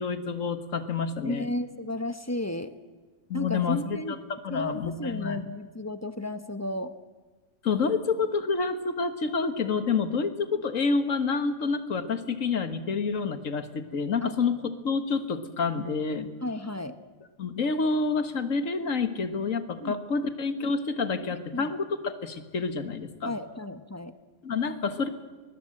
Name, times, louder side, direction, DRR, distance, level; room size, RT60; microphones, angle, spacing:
voice 1, 0.0-1.5 3.3-4.0 4.4-5.4 7.6-14.6 14.8-16.3 17.4-23.3 24.4-25.1, left 4 dB, 90° left, 10 dB, 1.9 m, -28 dB
voice 2, 1.2-2.8 3.3-4.2 4.5-6.9 14.2-14.3 16.4-17.0 19.8-20.0 21.3-21.7 23.2-24.1, left 1 dB, 15° left, 10 dB, 1.0 m, -33 dB
21.5 x 21.0 x 7.9 m, 1.3 s
omnidirectional pair, 1.3 m